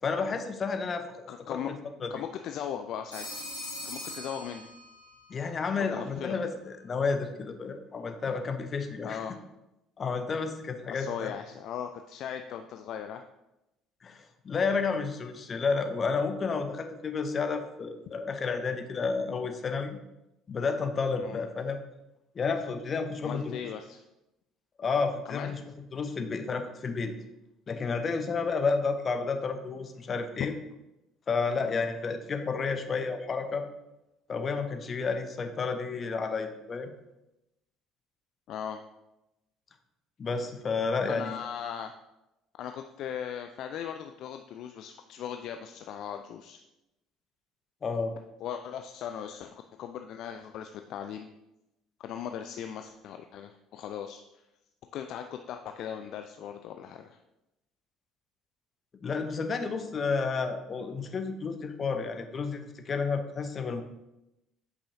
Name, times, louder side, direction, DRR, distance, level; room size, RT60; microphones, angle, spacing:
voice 1, 0.0-2.1 5.3-9.2 10.0-11.3 14.0-20.0 20.5-21.8 22.3-23.6 24.8-25.6 25.9-27.1 27.7-30.5 31.3-33.7 34.3-36.9 40.2-41.4 47.8-48.1 59.0-63.8, left 4 dB, 35° left, 6 dB, 0.8 m, -31 dB
voice 2, 1.3-1.7 2.1-3.4 3.8-4.7 5.8-6.4 9.0-9.4 10.9-13.2 21.2-21.4 23.2-24.0 25.3-25.6 31.6-31.9 38.5-38.8 41.1-41.9 42.6-46.6 48.4-51.3 52.0-54.2 54.9-57.2, left 9 dB, 55° left, 6 dB, 0.3 m, -38 dB
Telephone, 3.1-5.2, left 1 dB, 90° left, 2.5 m, -40 dB
8.2 x 5.5 x 2.7 m, 0.92 s
figure-of-eight pair, 55°, 0 cm